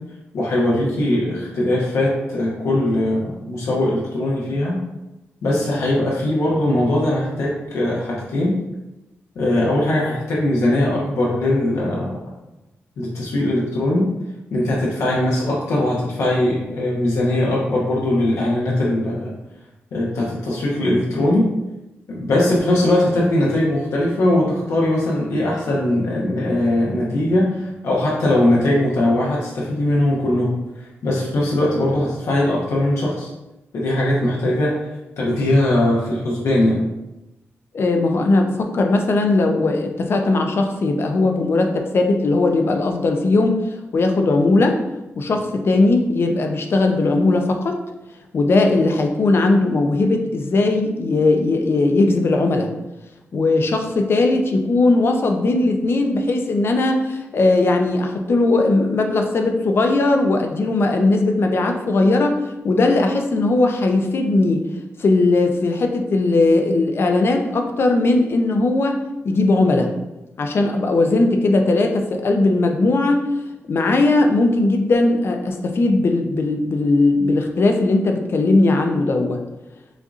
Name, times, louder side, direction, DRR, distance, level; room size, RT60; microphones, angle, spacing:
voice 1, 0.3-4.8 5.4-8.6 9.3-12.2 13.0-14.1 14.5-19.3 19.9-21.5 22.1-33.3 33.7-34.8 35.2-36.8, left 1 dB, 85° left, -4 dB, 0.9 m, -20 dB
voice 2, 37.7-43.6 43.9-44.8 45.2-47.8 48.3-52.7 53.3-64.7 65.0-69.9 70.4-73.2 73.7-79.4, left 2 dB, 55° left, 4 dB, 0.6 m, -18 dB
6.3 x 2.6 x 2.5 m, 0.98 s
cardioid pair, 85°, 5 cm